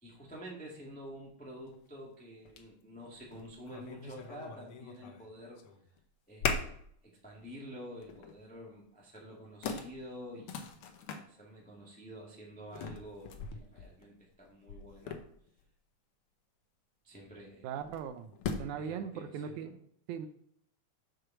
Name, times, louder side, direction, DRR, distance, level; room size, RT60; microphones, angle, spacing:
voice 1, 0.0-5.6 6.3-6.7 7.0-10.8 11.1-15.2 17.0-17.7 18.6-19.7, equal, 5° left, -4 dB, 1.2 m, -49 dB
sound 1, 1.7-1.8 2.4-2.7 3.1-5.3 5.6-6.0 6.4-6.9 7.3-7.5 8.0-8.4 9.2-9.3 9.6-11.2 12.7-15.6 17.8-18.9, left 5 dB, 75° left, 1.3 m, -40 dB
voice 2, 17.6-18.3 18.6-19.7 20.1-20.3, right 7 dB, 85° right, 9 dB, 2.0 m, -39 dB
6.5 x 4.5 x 6.1 m, 0.65 s
omnidirectional pair, 3.4 m